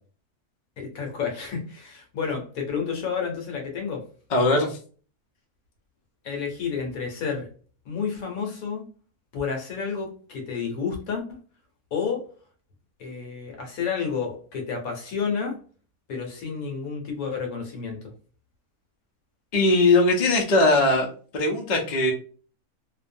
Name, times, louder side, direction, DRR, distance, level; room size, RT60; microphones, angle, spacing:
voice 1, 0.8-4.1 6.2-7.5 7.9-8.8 9.3-11.2 11.9-12.2 13.0-15.6 16.1-18.0, left 6 dB, 70° left, 2 dB, 1.2 m, -30 dB
voice 2, 4.3-4.8 19.5-21.1 21.3-22.1, left 2 dB, 50° left, 0 dB, 0.6 m, -20 dB
2.7 x 2.2 x 2.5 m, 0.40 s
omnidirectional pair, 1.6 m